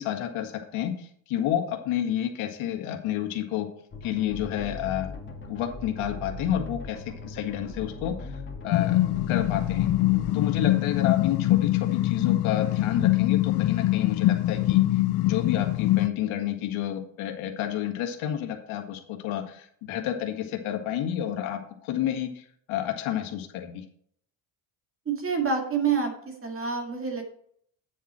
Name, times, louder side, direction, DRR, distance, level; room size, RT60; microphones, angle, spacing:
voice 1, 0.0-3.7 4.0-5.1 5.5-9.0 9.3-9.9 10.3-23.8, left 11 dB, 75° left, 3 dB, 1.9 m, -30 dB
sound 1, 3.9-10.6, left 2 dB, 25° left, 2.4 m, -39 dB
sound 2, 8.7-16.1, left 16 dB, 55° left, 0.5 m, -23 dB
voice 2, 25.1-27.2, right 5 dB, 25° right, 3 dB, 2.0 m, -27 dB
9.3 x 7.4 x 4.3 m, 0.64 s
cardioid pair, 135°, 48 cm